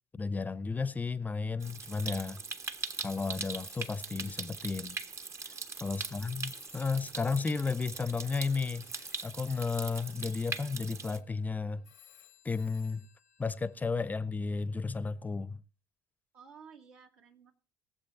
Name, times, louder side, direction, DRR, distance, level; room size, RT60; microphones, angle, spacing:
voice 1, 0.1-2.4 3.0-5.0 5.8-8.9 9.2-11.8 12.4-13.1 13.4-15.6, left 4 dB, 20° left, 0.6 m, -33 dB
Stream, 1.6-11.2, right 4 dB, 35° right, 1.0 m, -41 dB
Telephone, 1.9-5.5 5.8-13.8, left 11 dB, 85° left, 0.9 m, -61 dB
voice 2, 5.8-6.3 16.3-17.5, right 6 dB, 70° right, 2.3 m, -55 dB
21.5 x 7.5 x 4.1 m
hypercardioid pair, 60°, 8 cm